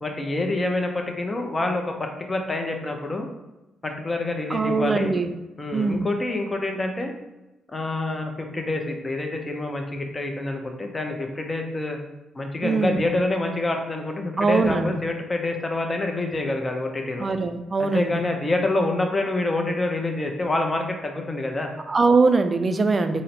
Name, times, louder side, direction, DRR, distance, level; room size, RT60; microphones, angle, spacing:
voice 1, 0.0-3.3 3.8-5.1 5.6-7.1 7.7-12.0 12.4-17.3 17.8-21.7, left 2 dB, 25° left, 3 dB, 0.6 m, -27 dB
voice 2, 4.5-5.3 5.7-6.1 12.6-13.0 14.4-14.9 17.2-18.1 21.9-23.2, right 4 dB, 30° right, 8 dB, 0.3 m, -21 dB
3.9 x 2.1 x 4.1 m, 1.0 s
cardioid pair, 90°, 0 cm